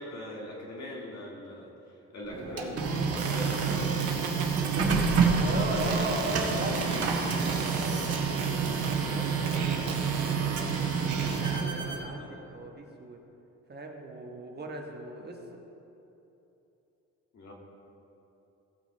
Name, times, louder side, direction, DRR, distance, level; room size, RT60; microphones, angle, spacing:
voice 1, 0.0-3.9 5.5-7.1 12.2-12.5 17.3-17.5, left 1 dB, 60° left, -3 dB, 2.6 m, -40 dB
Printer, 2.3-12.1, right 5 dB, 50° right, 1.5 m, -28 dB
sound 1, 3.2-12.0, right 5 dB, 75° right, 1.4 m, -38 dB
voice 2, 5.1-10.3 11.2-13.2 13.7-15.4, right 2 dB, 35° right, 1 dB, 1.3 m, -38 dB
16.0 x 5.9 x 4.5 m, 3.0 s
cardioid pair, 90°, 30 cm